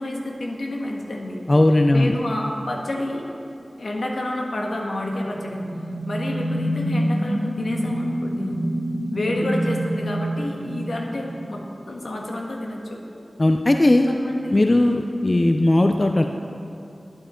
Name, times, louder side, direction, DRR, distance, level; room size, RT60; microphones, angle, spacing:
voice 1, 0.0-1.4 1.9-3.3 3.8-5.6 6.1-8.6 9.1-13.0 14.1-14.6, left 1 dB, 75° left, 0 dB, 1.6 m, -29 dB
voice 2, 1.5-2.2 13.4-14.1 14.5-16.2, left 1 dB, 40° left, 5 dB, 0.6 m, -17 dB
sound 1, 5.3-11.6, right 1 dB, 60° left, 3.2 m, -27 dB
11.5 x 11.5 x 4.4 m, 2.6 s
cardioid pair, 45°, 0 cm